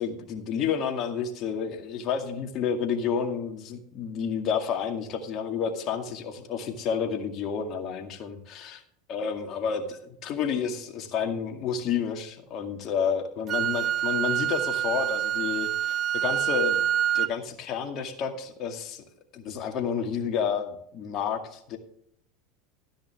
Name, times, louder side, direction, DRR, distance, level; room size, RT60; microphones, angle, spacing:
voice 1, 0.0-8.8 9.1-16.8 17.1-19.0 19.3-21.8, left 7 dB, 50° left, 5 dB, 2.1 m, -30 dB
Wind instrument woodwind instrument, 13.5-17.3, right 11 dB, 45° right, 0.3 m, -26 dB
13.0 x 10.0 x 3.5 m, 0.71 s
hypercardioid pair, 90°, 0 cm